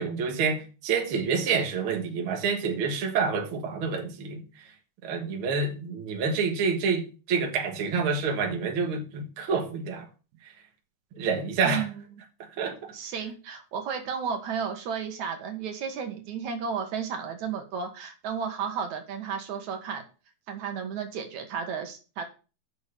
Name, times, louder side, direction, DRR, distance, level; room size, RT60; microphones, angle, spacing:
voice 1, 0.0-4.7 5.0-10.1 10.4-10.5 11.2-11.9 12.4-12.9, right 5 dB, 50° right, 2.1 m, -28 dB
voice 2, 11.6-12.0 12.9-20.0 20.5-22.2, right 6 dB, 80° right, 2.9 m, -33 dB
6.9 x 6.4 x 6.8 m
omnidirectional pair, 3.3 m